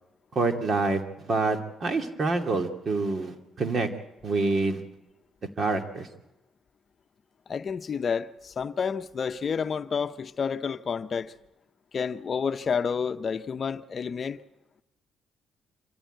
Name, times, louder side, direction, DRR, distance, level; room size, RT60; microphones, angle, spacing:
voice 1, 0.3-3.9 4.2-4.8 5.6-6.1, right 3 dB, 45° right, 2.6 m, -27 dB
voice 2, 7.5-11.3 11.9-14.4, left 6 dB, 45° left, 0.8 m, -30 dB
26.5 x 14.5 x 9.2 m
cardioid pair, 90°, 0 cm